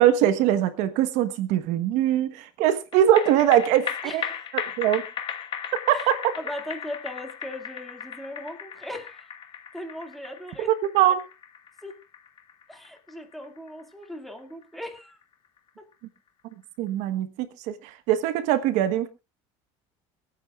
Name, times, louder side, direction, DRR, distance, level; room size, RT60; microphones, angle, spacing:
voice 1, 0.0-4.2 4.5-5.0 5.9-6.2 10.9-11.2 16.8-17.3 17.7-19.1, right 11 dB, 70° right, 11 dB, 1.2 m, -22 dB
sound 1, 2.9-15.6 15.9-16.0, left 8 dB, 40° left, 1.4 m, -37 dB
voice 2, 4.0-4.6 5.9-9.3 9.7-10.7 11.8-11.9 12.7-15.2 15.8-15.9, left 1 dB, ahead, 4 dB, 2.3 m, -38 dB
25.5 x 9.2 x 2.4 m, 0.28 s
supercardioid pair, 125°, 13 cm